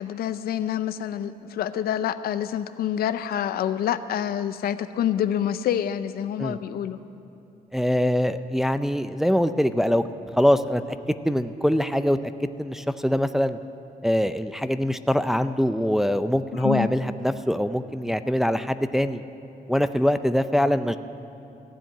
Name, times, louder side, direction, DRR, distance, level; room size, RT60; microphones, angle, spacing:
voice 1, 0.0-7.0 16.5-16.9, left 10 dB, 90° left, 12 dB, 0.5 m, -27 dB
voice 2, 7.7-10.0 10.4-11.0 11.2-12.2 12.6-13.6 14.0-19.2 19.7-21.0, equal, ahead, 10 dB, 0.4 m, -23 dB
15.0 x 7.6 x 9.9 m, 2.8 s
cardioid pair, 120°, 15 cm